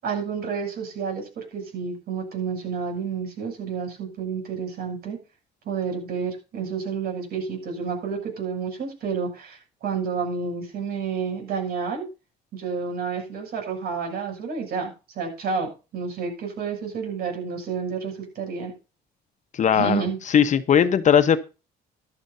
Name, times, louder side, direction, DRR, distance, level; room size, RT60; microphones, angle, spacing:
voice 1, 0.0-5.2 5.6-12.0 12.5-18.7 19.7-20.2, right 6 dB, 65° right, 2 dB, 7.9 m, -30 dB
voice 2, 19.5-20.0 20.3-21.4, left 8 dB, 45° left, 11 dB, 1.2 m, -18 dB
14.5 x 12.0 x 2.8 m, 0.32 s
cardioid pair, 110°, 17 cm